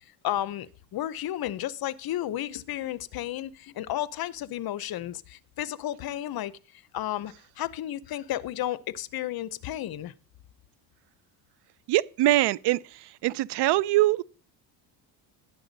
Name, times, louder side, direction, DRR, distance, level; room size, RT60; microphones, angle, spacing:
voice 1, 0.2-6.5 6.9-10.1, left 13 dB, 50° left, 0.7 m, -33 dB
voice 2, 11.9-12.8 13.2-14.2, right 16 dB, 60° right, 0.5 m, -22 dB
12.0 x 9.7 x 4.0 m
cardioid pair, 120°, 47 cm